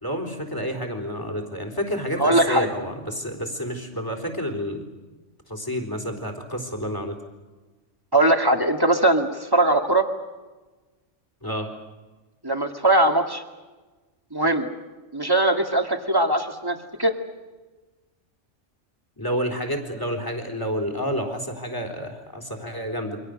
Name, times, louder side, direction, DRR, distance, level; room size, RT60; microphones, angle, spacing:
voice 1, 0.0-4.9 5.5-7.2 11.4-11.7 19.2-23.2, equal, 15° left, 5 dB, 4.0 m, -29 dB
voice 2, 2.2-2.7 8.1-10.1 12.4-13.4 14.3-14.7 15.1-17.1, right 1 dB, 20° right, 4 dB, 2.2 m, -20 dB
29.0 x 25.5 x 6.7 m, 1.2 s
omnidirectional pair, 1.3 m